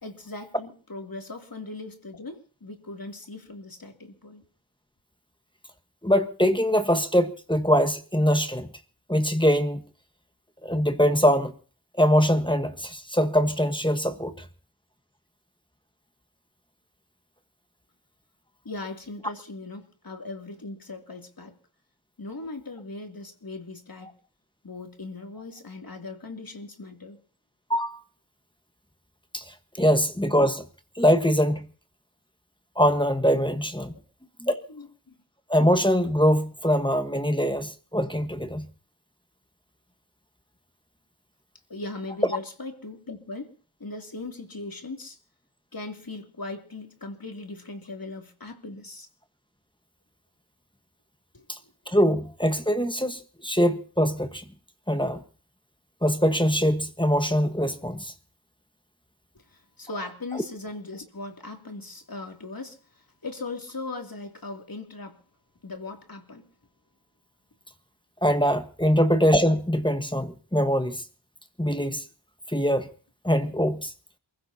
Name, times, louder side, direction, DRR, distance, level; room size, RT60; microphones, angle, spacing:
voice 1, 0.0-4.4 18.6-21.5 22.2-24.2 24.6-27.2 33.9-34.0 34.7-35.2 41.7-43.5 43.8-45.2 45.7-49.1 51.3-52.0 59.5-65.2 65.6-66.4 68.8-68.9, left 3 dB, 45° left, 2.8 m, -39 dB
voice 2, 6.0-8.7 9.1-9.8 10.6-11.5 12.0-14.3 27.7-28.0 29.3-29.4 29.8-30.6 31.0-31.6 32.8-33.9 34.4-34.6 35.5-38.7 51.5-51.6 51.9-54.4 54.9-55.2 56.0-58.1 68.2-71.0 71.6-72.0 72.5-72.9 73.2-73.9, equal, 10° left, 1.3 m, -23 dB
28.0 x 15.5 x 2.8 m
wide cardioid pair, 70°, 47 cm